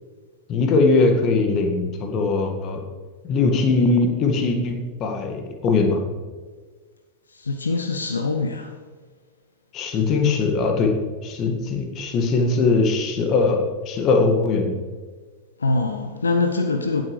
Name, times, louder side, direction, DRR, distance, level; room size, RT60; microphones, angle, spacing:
voice 1, 0.5-2.8 3.2-6.0 9.7-10.9 11.2-14.7, left 3 dB, 35° left, 4 dB, 1.8 m, -20 dB
voice 2, 7.3-8.8 15.6-17.0, left 3 dB, 75° left, 6 dB, 0.7 m, -24 dB
17.0 x 8.1 x 3.3 m, 1.4 s
figure-of-eight pair, 90°, 0 cm